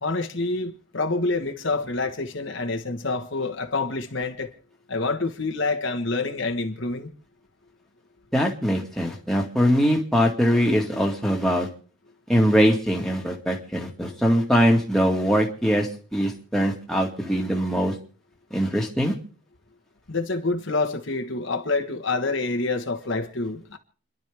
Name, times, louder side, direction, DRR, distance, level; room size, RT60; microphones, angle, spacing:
voice 1, 0.0-4.5 4.9-7.1 20.1-23.8, left 3 dB, 60° left, 1.4 m, -27 dB
voice 2, 8.3-11.7 12.3-17.9 18.5-19.1, equal, ahead, 2.1 m, -22 dB
30.0 x 11.5 x 3.5 m
head